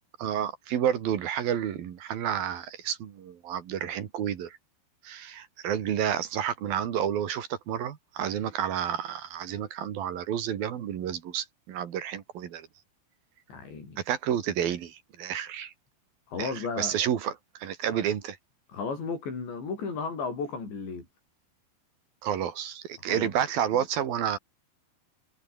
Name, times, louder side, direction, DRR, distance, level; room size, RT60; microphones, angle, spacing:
voice 1, 0.2-4.6 5.0-12.7 14.0-15.7 16.4-18.4 22.2-24.4, right 9 dB, 60° right, 3.6 m, -30 dB
voice 2, 13.5-14.0 16.3-16.9 17.9-18.0 18.7-21.1 23.0-23.3, left 4 dB, 85° left, 10.0 m, -34 dB
omnidirectional pair, 5.0 m